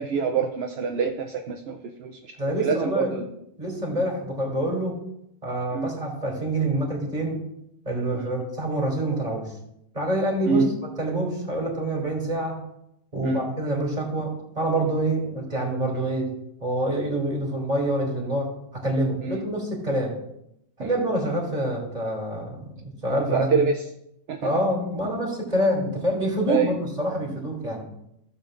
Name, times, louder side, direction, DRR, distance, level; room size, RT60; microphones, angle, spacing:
voice 1, 0.0-3.3 3.9-4.1 5.7-5.9 8.1-8.4 10.5-10.7 13.2-13.4 19.2-19.4 20.8-21.0 23.3-23.8 24.3-24.5 26.5-26.7, right 5 dB, 70° right, 4 dB, 0.9 m, -26 dB
voice 2, 2.4-3.1 3.6-5.0 5.4-7.4 7.8-9.5 9.9-10.6 11.0-12.6 13.1-16.3 16.6-20.2 20.8-23.6 24.4-27.9, right 1 dB, 35° right, -1 dB, 2.8 m, -26 dB
15.5 x 7.0 x 2.5 m, 0.80 s
omnidirectional pair, 1.1 m